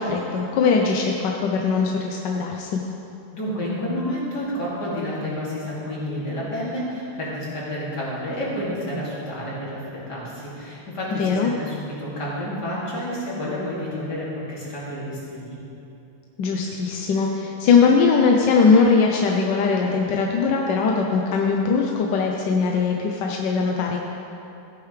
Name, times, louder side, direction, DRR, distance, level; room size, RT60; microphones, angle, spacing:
voice 1, 0.0-2.8 11.2-11.5 16.4-24.0, left 5 dB, 65° left, 0 dB, 1.2 m, -20 dB
voice 2, 3.3-15.6, equal, 50° left, -7 dB, 3.1 m, -30 dB
14.0 x 9.5 x 3.3 m, 2.8 s
omnidirectional pair, 2.4 m